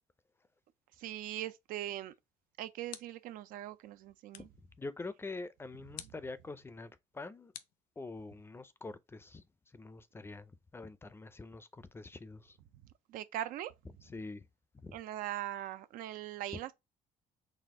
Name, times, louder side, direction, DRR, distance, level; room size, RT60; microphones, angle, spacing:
voice 1, 1.0-2.1 2.6-4.5 6.0-6.1 13.1-13.7 14.9-16.7, right 13 dB, 80° right, 0.5 m, -40 dB
sound 1, 2.2-3.4 4.3-4.7 5.9-6.3 7.5-8.4, left 12 dB, 80° left, 0.6 m, -51 dB
voice 2, 4.8-7.5 8.0-9.4 9.7-12.6 14.0-14.4 14.7-15.0, left 3 dB, 15° left, 0.4 m, -45 dB
4.2 x 2.4 x 3.5 m
cardioid pair, 115°, 14 cm